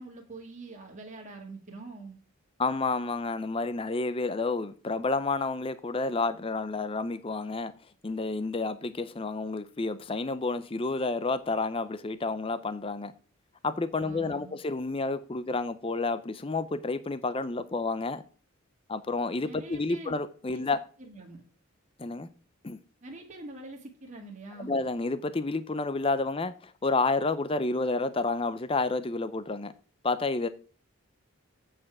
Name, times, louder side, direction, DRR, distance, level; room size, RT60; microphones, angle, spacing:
voice 1, 0.0-2.2 14.0-14.6 19.4-20.1 20.5-20.6 21.0-21.4 23.0-24.8, right 2 dB, 35° right, 1.8 m, -44 dB
voice 2, 2.6-7.7 8.0-13.1 13.6-18.2 18.9-20.8 22.0-22.3 22.6-22.8 24.6-29.7 30.0-30.5, left 3 dB, 25° left, 0.5 m, -30 dB
8.5 x 5.1 x 5.9 m
head